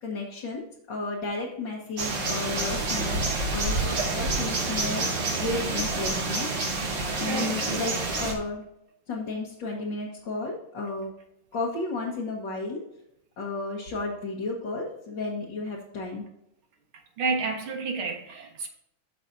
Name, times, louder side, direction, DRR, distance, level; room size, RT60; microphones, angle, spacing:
voice 1, 0.0-3.2 3.5-5.1 5.4-6.5 7.1-8.6 9.1-11.1 11.5-12.8 13.4-16.2, left 3 dB, 65° left, 2.1 m, -33 dB
sound 1, 2.0-8.3, right 3 dB, 65° right, 2.5 m, -28 dB
voice 2, 7.2-7.7 17.2-18.7, right 4 dB, 85° right, 2.3 m, -30 dB
13.5 x 5.9 x 2.7 m
omnidirectional pair, 2.2 m